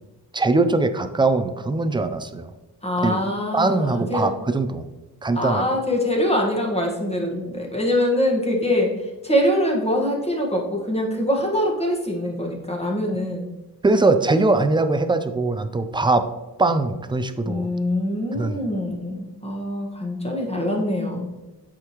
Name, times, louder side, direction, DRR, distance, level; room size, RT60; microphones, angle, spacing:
voice 1, 0.3-2.5 3.0-3.2 3.5-4.9 5.2-5.6 13.8-16.3 16.6-17.7 18.3-18.6, right 3 dB, 15° right, 9 dB, 0.4 m, -21 dB
voice 2, 2.8-4.3 5.3-13.5 17.4-21.3, left 1 dB, 15° left, -1 dB, 1.6 m, -24 dB
8.1 x 5.0 x 3.0 m, 1.1 s
wide cardioid pair, 100°, 38 cm